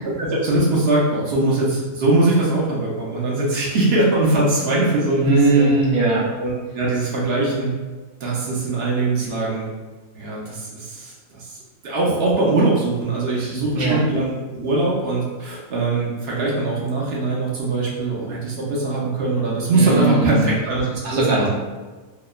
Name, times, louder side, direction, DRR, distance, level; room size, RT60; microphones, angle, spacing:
voice 1, 0.0-5.7 6.4-7.7 8.2-9.7 10.1-11.6 11.8-21.5, right 2 dB, 60° right, -4 dB, 0.7 m, -21 dB
voice 2, 5.2-6.2 13.7-14.0 19.7-20.5 21.0-21.5, right 3 dB, 80° right, -5 dB, 1.1 m, -19 dB
2.9 x 2.0 x 2.3 m, 1.3 s
omnidirectional pair, 1.4 m